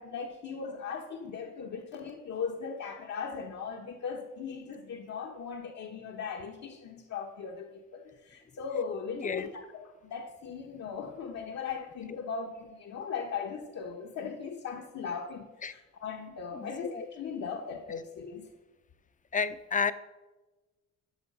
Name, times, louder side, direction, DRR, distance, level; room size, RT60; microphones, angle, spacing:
voice 1, 0.0-18.5, left 6 dB, 65° left, 1 dB, 1.2 m, -38 dB
voice 2, 9.2-9.5 15.6-15.7 16.5-17.0 19.3-19.9, left 5 dB, 25° left, 12 dB, 0.7 m, -31 dB
12.5 x 6.5 x 5.4 m, 1.2 s
cardioid pair, 90°, 30 cm